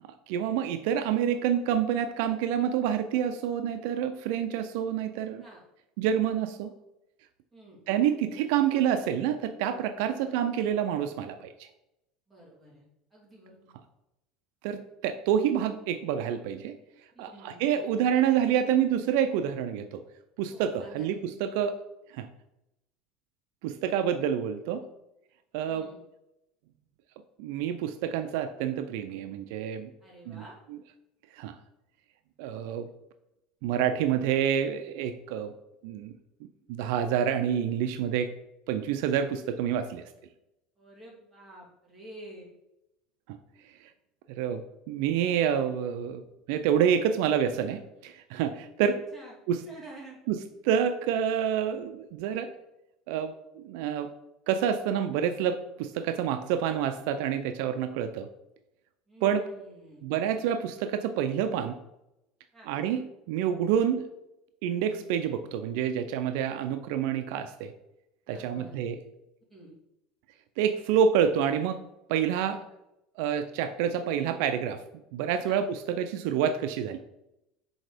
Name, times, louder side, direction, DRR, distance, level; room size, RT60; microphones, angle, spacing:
voice 1, 0.3-5.4 6.0-6.7 7.9-11.7 14.6-16.8 17.2-20.0 20.4-21.8 22.1-22.3 23.6-24.9 25.5-25.9 27.4-29.9 30.3-30.4 31.3-31.6 32.4-32.9 33.6-35.5 35.8-36.1 36.4-38.3 38.7-40.1 43.3-43.4 43.8-43.9 44.3-46.2 46.5-49.0 49.5-49.6 50.3-52.5 53.1-54.1 54.5-58.3 59.2-59.4 60.0-61.8 62.7-64.1 64.6-67.7 68.3-69.0 70.6-72.6 73.2-74.8 75.1-77.0, right 8 dB, 75° right, 9 dB, 0.5 m, -28 dB
voice 2, 10.0-10.4 12.3-12.8 13.1-13.7 17.1-17.8 20.5-21.2 25.7-26.0 30.0-30.5 40.8-42.5 49.1-49.3 49.6-50.2 59.1-60.0 62.5-62.7 68.3-68.8 69.5-69.7 75.4-75.6, right 1 dB, 5° right, -6 dB, 2.7 m, -49 dB
6.3 x 4.4 x 5.0 m, 0.88 s
cardioid pair, 145°, 0 cm